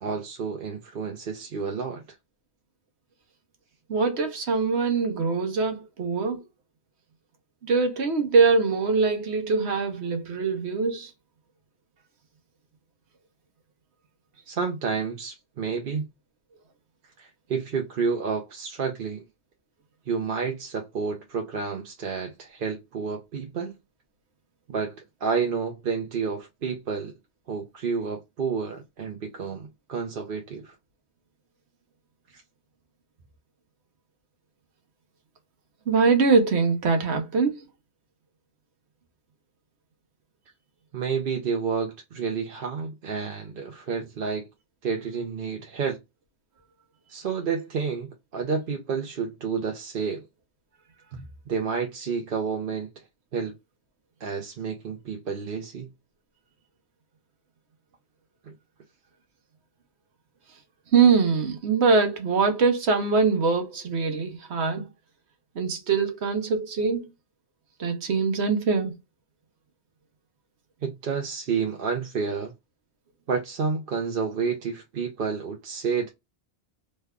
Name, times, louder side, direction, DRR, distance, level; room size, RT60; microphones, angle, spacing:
voice 1, 0.0-2.0 14.5-16.1 17.2-19.3 20.1-23.7 24.7-24.9 25.2-27.1 27.5-30.7 40.9-44.5 44.8-46.0 47.1-50.2 51.5-52.9 53.3-53.5 54.2-55.9 70.8-72.5 73.3-76.1, right 5 dB, 60° right, 0.8 m, -30 dB
voice 2, 3.9-6.4 7.6-11.1 35.9-37.6 51.1-51.2 60.9-64.9 65.6-67.1 67.8-68.9, right 4 dB, 80° right, 1.1 m, -23 dB
3.3 x 2.2 x 3.5 m
omnidirectional pair, 1.1 m